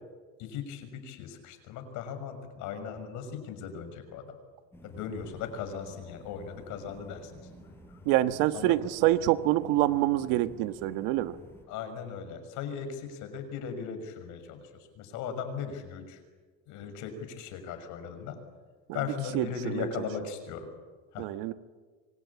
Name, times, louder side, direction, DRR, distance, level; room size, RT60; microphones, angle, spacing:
voice 1, 0.4-4.3 4.8-7.5 8.5-8.8 11.7-16.2 16.7-18.4 18.9-20.7 21.1-21.3, left 6 dB, 60° left, 8 dB, 6.3 m, -38 dB
sound 1, 4.7-11.6, equal, 5° left, 6.0 m, -52 dB
voice 2, 8.0-11.4 18.9-19.0 19.3-19.9 21.2-21.5, right 15 dB, 75° right, 11 dB, 1.4 m, -26 dB
27.0 x 25.0 x 8.6 m, 1.4 s
cardioid pair, 140°, 33 cm